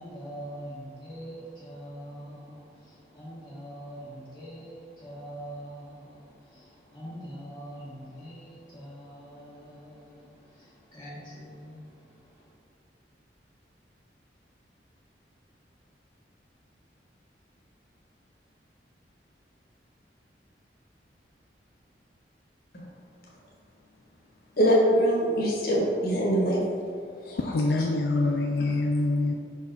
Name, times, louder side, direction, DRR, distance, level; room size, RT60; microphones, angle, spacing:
voice 1, 0.0-12.2, equal, 20° left, -11 dB, 1.1 m, -43 dB
voice 2, 24.6-26.6 27.2-27.4, equal, 55° left, -4 dB, 1.4 m, -23 dB
voice 3, 27.4-29.3, left 2 dB, 75° left, 2 dB, 0.4 m, -25 dB
5.8 x 4.7 x 3.7 m, 2.3 s
head